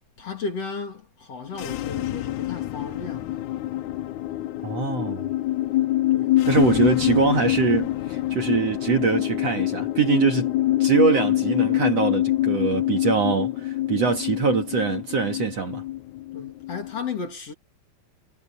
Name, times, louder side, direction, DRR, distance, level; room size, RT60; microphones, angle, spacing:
voice 1, 0.2-3.4 6.1-6.4 16.3-17.5, left 4 dB, 45° left, 3.6 m, -34 dB
sound 1, 1.4-17.0, left 15 dB, 85° left, 1.7 m, -25 dB
voice 2, 4.6-5.3 6.4-15.8, right 6 dB, 50° right, 2.5 m, -23 dB
omnidirectional pair, 4.4 m